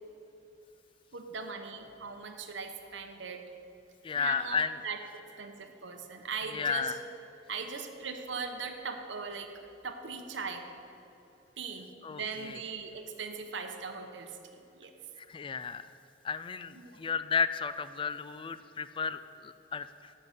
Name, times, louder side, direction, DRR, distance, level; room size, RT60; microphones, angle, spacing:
voice 1, 1.1-3.4 4.1-5.0 5.4-6.9 7.5-9.5 9.8-10.6 11.6-14.4 14.8-14.9 16.8-17.0, right 5 dB, 70° right, 5 dB, 0.9 m, -39 dB
voice 2, 4.0-4.8 6.5-7.0 12.0-12.6 15.2-15.9 16.2-20.1, left 6 dB, 25° left, 13 dB, 0.3 m, -33 dB
11.5 x 5.4 x 7.9 m, 2.9 s
head